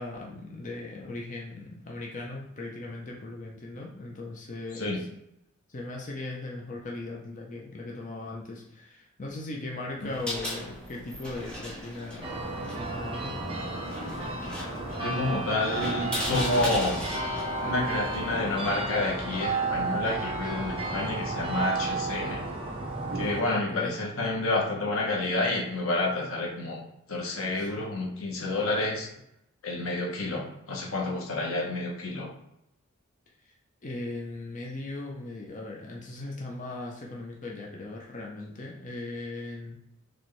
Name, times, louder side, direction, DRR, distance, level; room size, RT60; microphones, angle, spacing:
voice 1, 0.0-5.0 5.7-13.4 23.5-23.9 27.6-27.7 33.8-39.8, left 2 dB, 40° left, -2 dB, 0.7 m, -38 dB
sound 1, 10.0-18.7, equal, 5° left, 1.1 m, -38 dB
sound 2, 12.2-23.4, right 2 dB, 25° right, 0.9 m, -32 dB
voice 2, 15.0-17.1 17.6-22.5 23.1-26.8 27.1-29.1 29.6-32.3, left 2 dB, 85° left, -1 dB, 1.0 m, -29 dB
4.3 x 3.2 x 3.1 m, 0.81 s
head